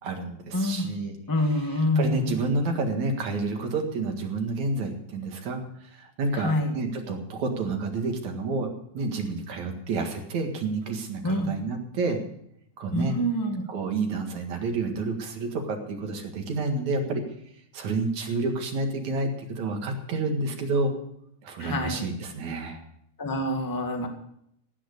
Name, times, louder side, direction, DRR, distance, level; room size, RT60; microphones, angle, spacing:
voice 1, 0.0-1.1 1.4-12.2 12.8-13.2 13.7-17.2 17.7-20.9 21.4-22.8, right 3 dB, 65° right, 3 dB, 3.1 m, -29 dB
voice 2, 0.5-0.9 1.3-2.3 6.3-6.7 11.2-11.5 12.9-13.6 21.6-22.0 23.2-24.1, left 1 dB, 10° left, 3 dB, 1.2 m, -26 dB
16.5 x 9.3 x 6.7 m, 0.72 s
omnidirectional pair, 3.6 m